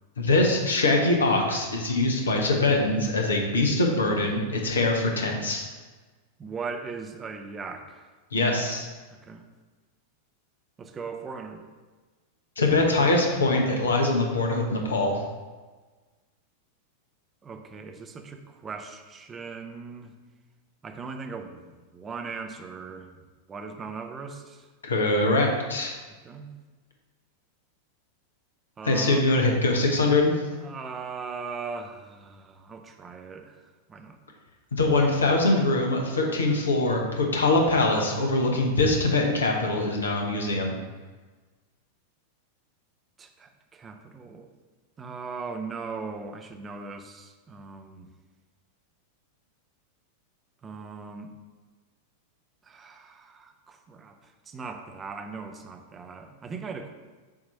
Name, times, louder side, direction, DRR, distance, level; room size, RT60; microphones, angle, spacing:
voice 1, 0.2-5.7 8.3-8.9 12.6-15.2 24.8-25.9 28.8-30.4 34.7-40.7, left 2 dB, 70° left, 1 dB, 1.0 m, -23 dB
voice 2, 6.4-8.1 9.2-9.4 10.8-11.7 17.4-20.1 20.8-23.2 23.5-24.7 26.2-26.5 28.8-29.3 30.5-34.2 43.2-44.5 45.0-48.1 50.6-51.3 52.6-56.9, right 4 dB, 20° right, 5 dB, 0.6 m, -39 dB
7.1 x 2.9 x 5.5 m, 1.3 s
figure-of-eight pair, 90°, 0 cm